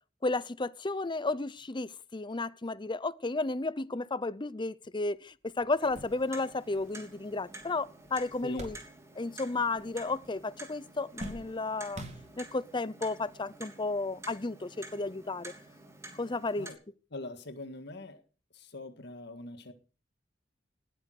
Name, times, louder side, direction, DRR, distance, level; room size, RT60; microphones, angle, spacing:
voice 1, 0.2-8.8 9.2-12.0 12.4-15.5 16.2-16.7, left 3 dB, 25° left, 0.7 m, -33 dB
sound 1, 5.1-5.2 5.6-9.4 9.7-10.4 10.7-12.7 13.5-13.6 14.9-15.1, right 1 dB, 40° right, 4.1 m, -47 dB
Clock, 5.8-16.7, right 2 dB, 15° right, 3.1 m, -50 dB
voice 2, 17.1-18.2 18.5-19.7, left 2 dB, 65° left, 1.8 m, -43 dB
19.0 x 8.7 x 6.6 m
head